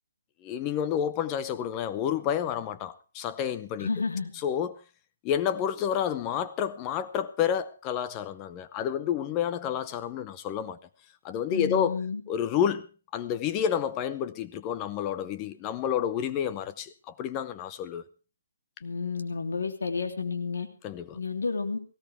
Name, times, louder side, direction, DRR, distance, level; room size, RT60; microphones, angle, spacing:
voice 1, 0.4-3.9 4.4-4.8 5.2-10.8 11.2-12.0 12.3-12.9 13.1-18.0 20.8-21.2, left 9 dB, 20° left, 0.7 m, -29 dB
voice 2, 3.8-4.3 11.5-12.2 18.8-20.7 21.1-21.8, left 4 dB, 85° left, 3.1 m, -31 dB
19.5 x 16.5 x 3.5 m
hypercardioid pair, 160°, 0 cm